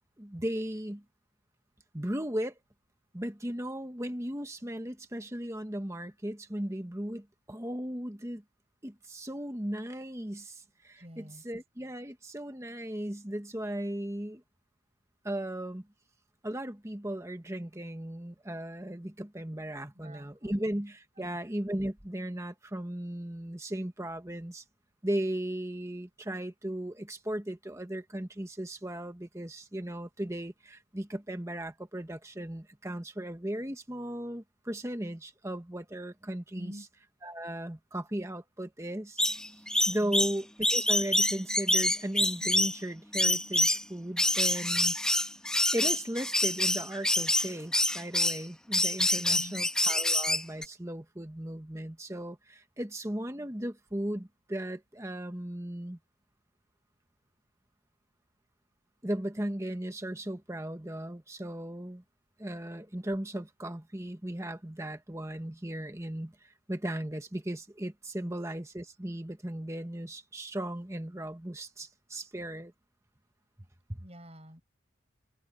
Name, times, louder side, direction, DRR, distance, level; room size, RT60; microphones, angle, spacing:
voice 1, 0.2-1.0 1.9-2.6 3.1-8.4 8.8-14.4 15.2-15.9 16.4-24.6 25.0-36.8 37.2-39.2 39.9-40.5 40.7-44.9 45.7-56.0 59.0-62.0 62.4-72.7 73.9-74.0, right 1 dB, 15° right, 1.2 m, -36 dB
voice 2, 11.0-11.4 19.9-20.7 21.2-21.4 36.5-36.9 40.0-40.3 49.3-49.7 68.2-68.4 74.0-74.6, equal, 30° right, 7.5 m, -47 dB
sound 1, 39.2-42.8 43.1-43.8 44.2-48.4 48.7-50.6, left 1 dB, 5° left, 1.1 m, -27 dB
open air
head